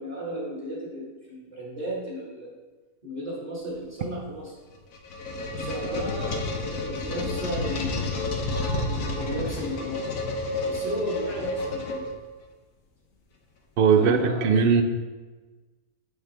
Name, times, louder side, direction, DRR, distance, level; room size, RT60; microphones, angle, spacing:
voice 1, 0.0-2.5 3.0-4.5 5.5-8.3 8.7-10.1 10.7-12.1 14.0-14.5, equal, 25° right, -8 dB, 1.7 m, -34 dB
sound 1, 4.7-12.4, left 2 dB, 75° left, 1.4 m, -30 dB
voice 2, 13.8-14.8, right 6 dB, 65° right, 7 dB, 0.5 m, -19 dB
7.4 x 6.5 x 3.4 m, 1.3 s
omnidirectional pair, 1.7 m